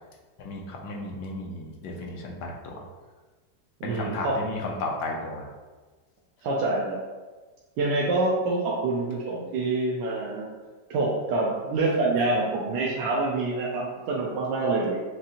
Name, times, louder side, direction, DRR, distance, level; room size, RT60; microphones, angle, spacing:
voice 1, 0.4-2.8 3.8-5.5, left 2 dB, 75° left, 0 dB, 1.3 m, -34 dB
voice 2, 3.8-4.3 6.4-7.0 7.8-10.5 10.9-15.0, right 2 dB, 90° right, -4 dB, 1.3 m, -26 dB
6.4 x 2.5 x 2.8 m, 1.3 s
omnidirectional pair, 1.9 m